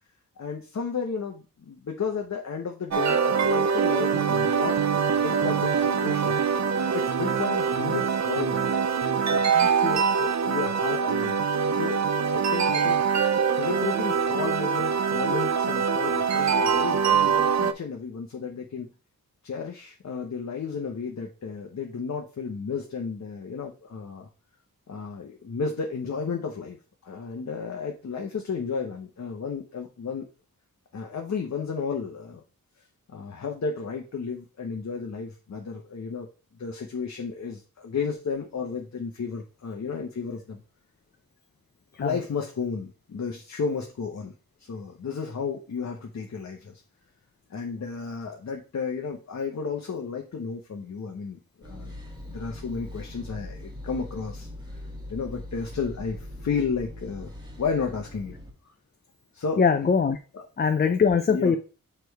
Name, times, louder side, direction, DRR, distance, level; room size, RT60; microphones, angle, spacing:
voice 1, 0.4-4.8 5.1-6.4 6.9-8.7 9.3-11.4 11.7-13.0 13.5-17.3 17.6-18.9 19.4-24.3 24.9-26.8 27.0-30.3 30.9-32.4 33.1-36.3 36.6-40.6 42.0-44.3 44.7-46.7 47.5-52.0 52.3-54.5 55.1-57.3 57.6-58.4 59.3-59.7 60.3-60.5 61.3-61.6, left 5 dB, 50° left, 2 dB, 0.9 m, -33 dB
sound 1, 2.9-17.7, right 6 dB, 50° right, 0.5 m, -24 dB
sound 2, 51.6-58.5, left 1 dB, 10° right, 1.8 m, -41 dB
voice 2, 59.6-60.2 60.6-61.6, left 5 dB, 30° left, 7 dB, 0.5 m, -21 dB
6.8 x 3.3 x 4.6 m, 0.35 s
wide cardioid pair, 140°, 35 cm